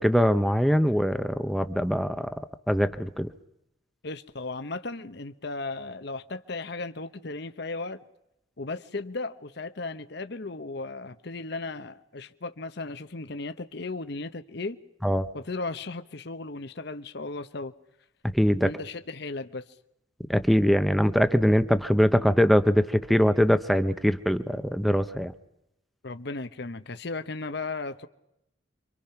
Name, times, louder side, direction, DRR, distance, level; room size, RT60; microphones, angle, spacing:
voice 1, 0.0-2.3 2.7-3.3 15.0-15.3 18.3-18.7 20.3-25.3, equal, ahead, 0.8 m, -22 dB
voice 2, 4.0-8.0 8.6-14.8 15.3-17.7 18.6-19.7 26.0-28.1, left 3 dB, 55° left, 0.9 m, -36 dB
27.5 x 24.5 x 5.9 m
head